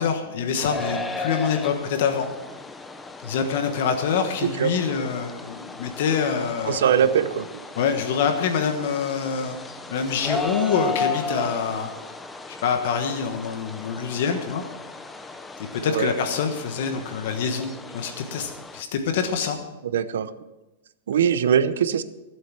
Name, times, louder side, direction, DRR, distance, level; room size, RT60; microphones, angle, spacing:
voice 1, 0.0-2.3 3.2-6.8 7.8-9.6 9.9-11.9 12.6-14.6 15.8-19.6, left 6 dB, 55° left, 6 dB, 1.2 m, -25 dB
sound 1, 0.6-18.8, left 3 dB, 5° left, 0.5 m, -35 dB
voice 2, 6.7-7.5 15.9-16.1 19.9-20.3 21.1-22.0, right 8 dB, 80° right, 13 dB, 0.8 m, -21 dB
16.0 x 7.8 x 6.1 m, 1.1 s
supercardioid pair, 170°, 0 cm